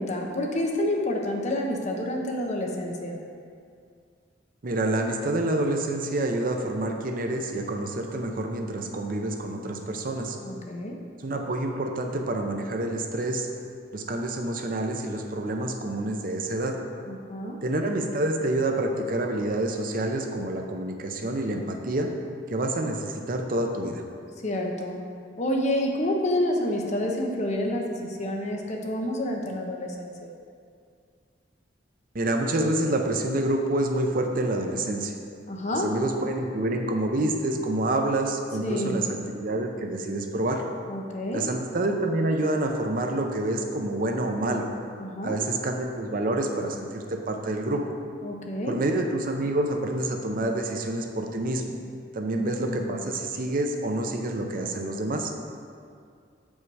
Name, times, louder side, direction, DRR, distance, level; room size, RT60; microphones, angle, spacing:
voice 1, 0.0-3.2 10.4-11.0 17.0-17.6 24.4-25.0 25.4-30.3 35.5-35.9 38.6-39.0 40.9-41.5 45.0-45.4 48.2-48.8 52.2-53.0, left 1 dB, 40° left, 0 dB, 0.9 m, -29 dB
voice 2, 4.6-10.4 11.2-13.5 13.9-16.8 17.6-22.1 22.5-24.0 32.1-35.1 35.7-39.1 39.3-40.6 41.3-44.7 45.2-47.8 48.7-51.8 52.1-55.3, right 1 dB, 50° right, 3 dB, 0.6 m, -27 dB
7.4 x 5.4 x 4.8 m, 2.3 s
head